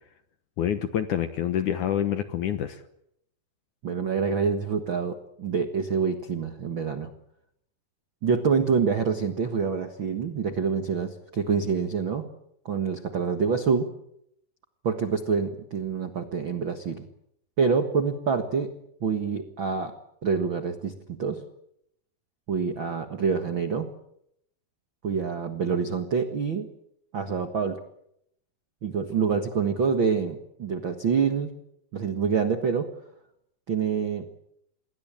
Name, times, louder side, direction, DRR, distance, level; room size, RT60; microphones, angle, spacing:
voice 1, 0.6-2.8, left 10 dB, 65° left, 10 dB, 2.0 m, -27 dB
voice 2, 3.8-7.1 8.2-12.2 12.6-13.9 14.8-17.0 17.6-18.7 19.0-19.9 20.2-21.4 22.5-23.9 25.0-26.7 27.1-27.8 28.8-31.5 31.9-32.9 33.7-34.3, right 6 dB, 65° right, 8 dB, 1.2 m, -26 dB
28.0 x 21.0 x 8.8 m, 0.77 s
omnidirectional pair, 4.8 m